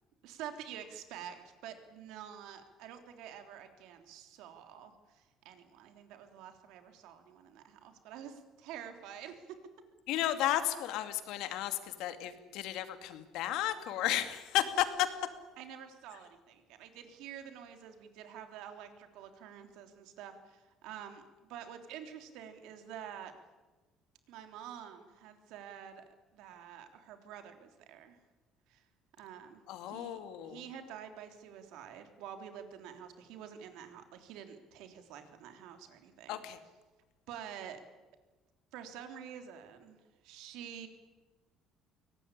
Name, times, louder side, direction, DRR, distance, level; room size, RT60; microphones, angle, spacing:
voice 1, 0.2-9.6 15.6-21.2 21.5-23.3 24.3-26.0 26.3-28.2 28.7-28.8 29.2-36.6 37.3-37.8 38.7-40.9, right 9 dB, 75° right, 7 dB, 3.4 m, -48 dB
voice 2, 10.1-15.1 29.7-30.6 36.3-36.6, left 12 dB, 75° left, 9 dB, 2.4 m, -33 dB
22.5 x 18.5 x 9.9 m, 1.2 s
cardioid pair, 140°, 0 cm